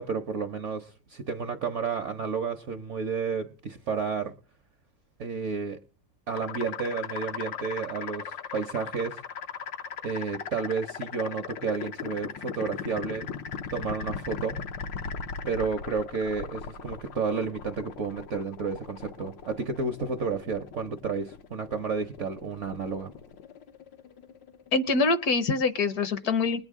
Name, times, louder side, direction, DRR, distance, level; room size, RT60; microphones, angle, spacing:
voice 1, 0.0-4.3 5.2-5.8 6.3-9.2 10.0-13.3 13.7-14.6 15.5-23.1, right 5 dB, 60° right, 0.8 m, -31 dB
sound 1, 6.3-25.1, left 6 dB, 85° left, 1.6 m, -39 dB
voice 2, 24.7-26.6, left 3 dB, 65° left, 1.2 m, -24 dB
21.0 x 9.1 x 3.6 m
omnidirectional pair, 1.9 m